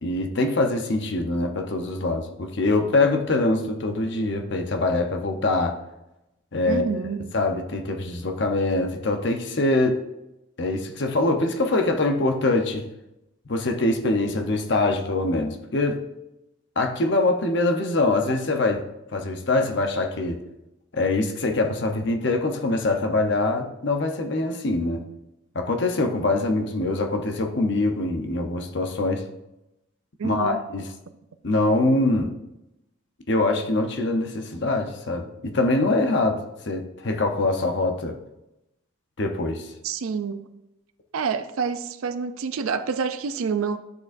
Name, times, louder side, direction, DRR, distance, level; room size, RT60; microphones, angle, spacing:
voice 1, 0.0-5.8 6.5-6.9 7.3-10.0 10.6-12.8 13.5-16.0 16.8-18.8 19.1-20.4 20.9-25.0 25.5-29.2 30.2-30.9 31.4-32.3 33.3-36.4 36.7-38.2 39.2-39.7, left 2 dB, 55° left, 0.8 m, -23 dB
voice 2, 6.7-7.3 30.2-30.6 39.8-40.5 41.1-43.8, right 5 dB, 85° right, 0.4 m, -28 dB
10.5 x 6.6 x 2.5 m
head